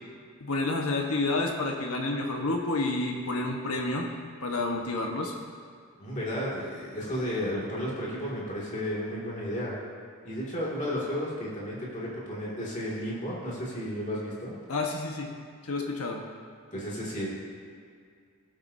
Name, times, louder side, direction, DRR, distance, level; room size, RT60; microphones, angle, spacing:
voice 1, 0.4-4.1 4.4-5.3 14.7-15.3 15.6-16.2, left 2 dB, 80° left, 1 dB, 1.3 m, -29 dB
voice 2, 6.0-9.8 10.2-14.5 16.7-17.3, equal, 35° left, -6 dB, 2.3 m, -33 dB
19.0 x 8.0 x 2.7 m, 2.2 s
head